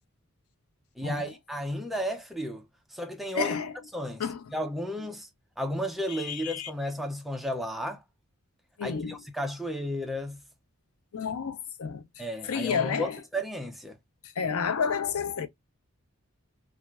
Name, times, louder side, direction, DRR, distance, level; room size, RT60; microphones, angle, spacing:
voice 1, 1.0-2.6 2.9-3.6 3.9-4.2 4.5-5.3 5.6-8.0 8.8-10.4 12.2-14.0, equal, ahead, 0.4 m, -33 dB
voice 2, 3.3-3.7 4.2-4.4 6.1-6.7 8.8-9.2 11.1-12.0 12.4-13.2 14.4-15.5, left 6 dB, 80° left, 0.5 m, -30 dB
3.1 x 2.4 x 2.2 m
head